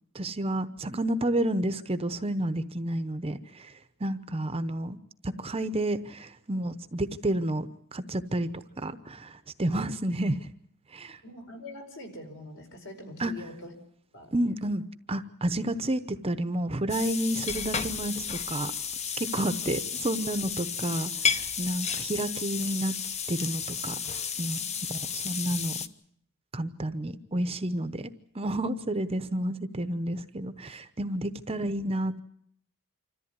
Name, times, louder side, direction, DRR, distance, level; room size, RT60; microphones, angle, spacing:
voice 1, 0.1-3.7 4.0-5.0 5.2-10.4 10.9-11.2 13.2-13.3 14.3-14.8 15.1-18.7 19.2-22.9 23.3-24.0 24.4-24.6 25.1-25.8 26.5-32.2, right 1 dB, 25° right, 11 dB, 0.9 m, -30 dB
voice 2, 11.2-13.7 14.1-14.4 19.6-19.7 24.6-24.7, left 1 dB, 60° left, 4 dB, 4.8 m, -44 dB
sound 1, 16.9-25.9, left 6 dB, 30° left, 0.9 m, -32 dB
26.5 x 14.0 x 9.6 m, 0.69 s
head